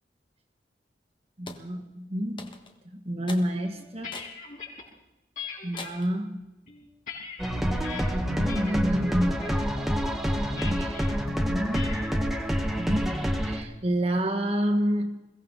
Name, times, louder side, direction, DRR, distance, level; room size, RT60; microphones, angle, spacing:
voice 1, 1.4-2.5 2.8-4.2 5.6-6.4 7.9-9.6 10.4-12.0 12.8-15.2, equal, 35° right, 1 dB, 1.6 m, -29 dB
sound 1, 1.5-1.7 2.4-2.8 3.3-3.5 4.1-4.4 4.9-5.0 5.8-6.2, left 3 dB, 25° left, 1.4 m, -42 dB
sound 2, 3.6-4.8 5.4-5.9 6.5-8.0 8.5-8.9 9.2-9.6 10.6-11.1 11.7-12.1, left 6 dB, 45° left, 5.2 m, -40 dB
sound 3, 7.4-13.6, equal, ahead, 1.5 m, -27 dB
22.0 x 16.5 x 4.0 m, 1.0 s
head